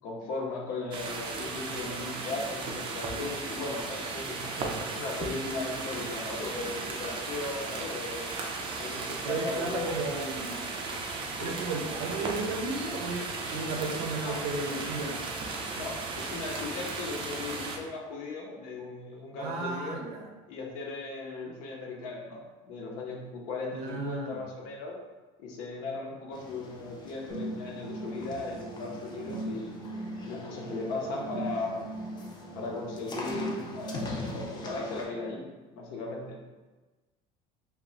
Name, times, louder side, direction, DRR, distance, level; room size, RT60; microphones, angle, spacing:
voice 1, 0.0-4.4 4.9-8.3 8.8-10.1 11.4-11.6 14.2-14.4 15.7-20.0 20.5-25.0 25.4-29.8 30.3-31.8 32.6-35.4 35.7-36.4, left 3 dB, 70° left, -1 dB, 0.6 m, -37 dB
sound 1, 0.9-17.8, right 3 dB, 35° right, 0.4 m, -36 dB
voice 2, 9.2-10.7 11.4-15.2 19.4-20.3 23.7-24.4, right 3 dB, 75° right, 1 dB, 0.6 m, -34 dB
sound 2, 26.3-35.0, left 3 dB, 30° left, 0.4 m, -43 dB
sound 3, 27.3-35.3, right 2 dB, 15° right, 0.7 m, -40 dB
2.1 x 2.1 x 3.7 m, 1.2 s
cardioid pair, 135°, 15 cm